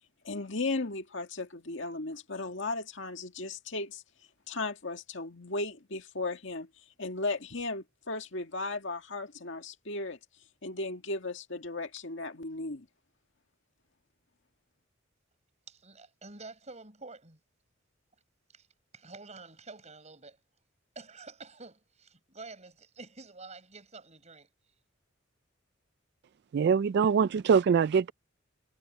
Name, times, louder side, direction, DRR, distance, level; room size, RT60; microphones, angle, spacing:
voice 1, 0.2-4.0 4.5-10.2 10.6-12.9, left 2 dB, 65° left, 2.1 m, -36 dB
voice 2, 15.7-17.4 18.5-18.7 18.9-20.4 20.9-24.5, right 3 dB, 35° right, 6.8 m, -48 dB
voice 3, 26.5-28.1, right 6 dB, 55° right, 0.3 m, -23 dB
head